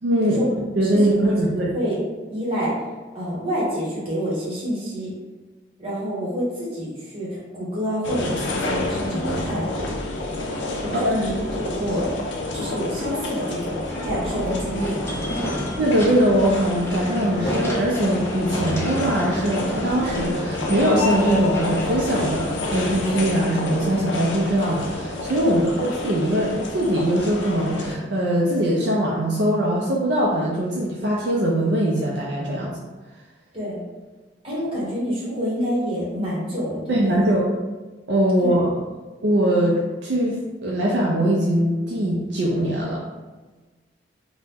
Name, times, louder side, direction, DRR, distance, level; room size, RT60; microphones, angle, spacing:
voice 1, 0.0-0.4 0.8-1.7 10.9-11.3 15.8-32.8 36.9-37.4 38.1-38.6 39.2-43.0, right 1 dB, 65° right, -4 dB, 0.4 m, -21 dB
voice 2, 0.8-1.5 1.7-2.0 2.3-2.7 3.1-5.1 5.8-9.7 10.8-11.3 11.6-12.1 12.5-15.1 25.4-25.6 33.5-33.8 34.4-37.2 38.4-38.5, equal, 30° right, -7 dB, 1.1 m, -27 dB
sound 1, 8.0-28.0, left 2 dB, 70° left, 0.5 m, -29 dB
sound 2, 13.9-23.1, equal, 15° left, 0.4 m, -31 dB
2.9 x 2.1 x 3.4 m, 1.3 s
head